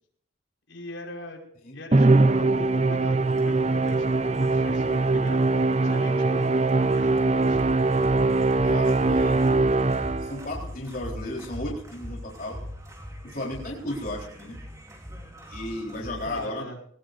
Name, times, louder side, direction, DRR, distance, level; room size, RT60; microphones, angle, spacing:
voice 1, 0.7-1.4 1.7-3.2 3.4-5.5 5.8-7.8 16.2-16.8, left 1 dB, 80° left, 1 dB, 5.8 m, -40 dB
Musical instrument, 1.9-10.5, right 3 dB, 35° right, 0.6 m, -22 dB
sound 1, 3.2-16.5, equal, 15° right, 4.2 m, -41 dB
voice 2, 8.6-9.6 10.2-12.6 13.2-14.6 15.5-16.6, left 1 dB, 45° left, -2 dB, 4.1 m, -34 dB
22.0 x 20.0 x 2.6 m, 0.62 s
head